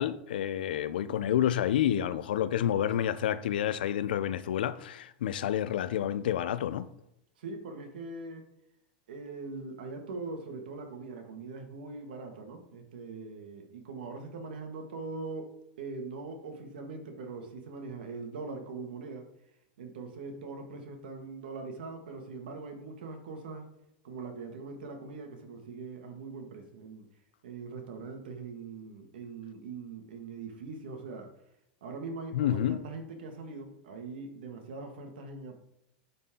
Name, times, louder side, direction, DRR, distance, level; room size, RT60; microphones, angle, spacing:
voice 1, 0.0-6.9 32.3-32.8, left 10 dB, 90° left, 0.6 m, -29 dB
voice 2, 7.4-8.5 9.1-19.3 19.8-23.7 24.0-27.1 27.4-31.3 31.8-35.6, right 3 dB, 85° right, 1.8 m, -42 dB
10.5 x 4.3 x 3.8 m
supercardioid pair, 170°, 5 cm